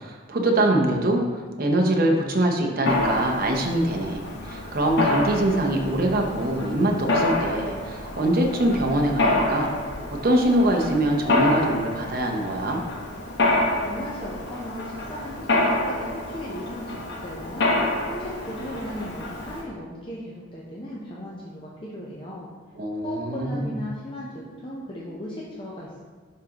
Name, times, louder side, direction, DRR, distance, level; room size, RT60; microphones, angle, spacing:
voice 1, 0.0-9.7 10.2-12.8 22.8-23.8, right 1 dB, 45° right, 1 dB, 0.8 m, -23 dB
Mechanisms, 2.9-19.6, left 2 dB, 55° left, 1.0 m, -27 dB
voice 2, 13.8-17.7 18.0-22.5 23.0-26.0, left 1 dB, 25° left, -6 dB, 0.7 m, -37 dB
11.0 x 3.8 x 2.9 m, 1.5 s
head